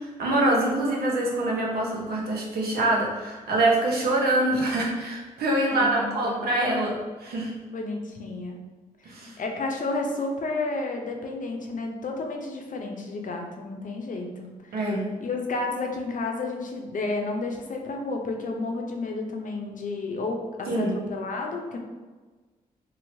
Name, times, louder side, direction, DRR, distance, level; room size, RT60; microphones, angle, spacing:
voice 1, 0.0-7.5 9.0-9.4 14.7-15.1 20.7-21.0, right 1 dB, 75° right, -2 dB, 0.8 m, -25 dB
voice 2, 5.7-6.4 7.7-8.6 9.2-14.5 15.2-21.8, left 3 dB, 55° left, 1 dB, 0.6 m, -31 dB
2.9 x 2.7 x 2.7 m, 1.3 s
supercardioid pair, 50°, 16 cm